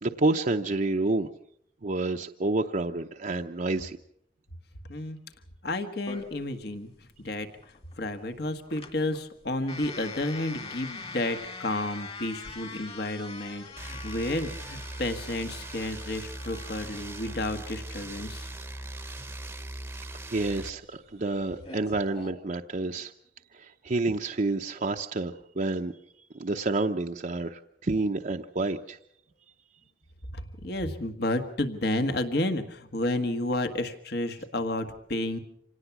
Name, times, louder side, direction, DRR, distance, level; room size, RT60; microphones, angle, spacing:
voice 1, 0.0-1.3 1.8-4.0 20.3-23.1 23.5-25.9 26.3-29.0, right 2 dB, 50° right, 4 dB, 0.7 m, -29 dB
voice 2, 5.6-7.5 8.0-18.5 30.3-35.4, left 1 dB, 65° left, 8 dB, 1.7 m, -31 dB
sound 1, 6.1-22.3, left 4 dB, 35° left, 2.3 m, -45 dB
sound 2, 13.8-20.7, right 1 dB, 15° right, 0.9 m, -40 dB
26.5 x 18.0 x 6.0 m, 0.70 s
head